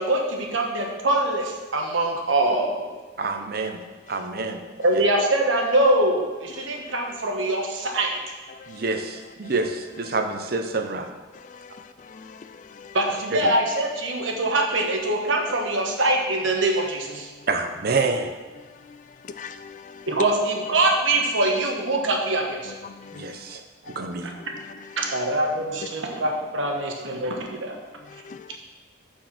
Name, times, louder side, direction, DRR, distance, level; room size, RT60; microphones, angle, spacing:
voice 1, 0.0-2.9 4.8-8.1 12.9-17.3 20.1-22.7 25.0-27.8, right 1 dB, 80° right, 1.2 m, -23 dB
voice 2, 3.2-3.8 4.1-4.6 4.9-5.0 8.7-11.1 13.3-13.5 17.5-18.4 23.1-24.3, right 3 dB, 50° right, 0.6 m, -27 dB
voice 3, 19.2-20.0 22.8-23.3 28.3-28.6, left 6 dB, 40° left, 0.3 m, -41 dB
7.5 x 4.7 x 5.8 m
head